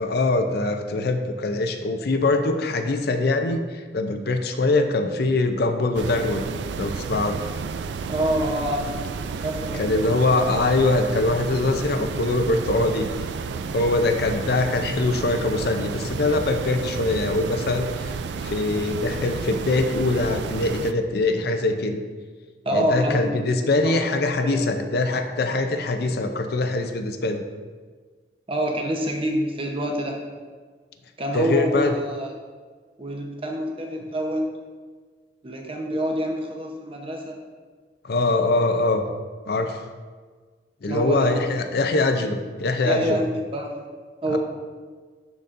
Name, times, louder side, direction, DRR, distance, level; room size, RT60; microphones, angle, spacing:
voice 1, 0.0-6.4 6.8-7.4 9.7-13.1 13.7-18.2 18.4-22.0 22.7-27.4 31.3-31.9 38.0-39.0 39.5-39.9 40.8-43.2 44.3-44.4, left 2 dB, 60° left, 7 dB, 0.5 m, -23 dB
sound 1, 5.9-20.9, right 5 dB, 70° right, 0.3 m, -31 dB
voice 2, 8.1-8.9 9.3-10.3 22.6-23.3 23.8-24.1 24.4-24.6 28.5-30.2 31.2-32.3 33.0-34.4 35.4-37.4 40.9-41.4 42.8-43.7 44.2-44.4, equal, 30° right, 1 dB, 0.8 m, -26 dB
12.0 x 4.0 x 2.6 m, 1.5 s
head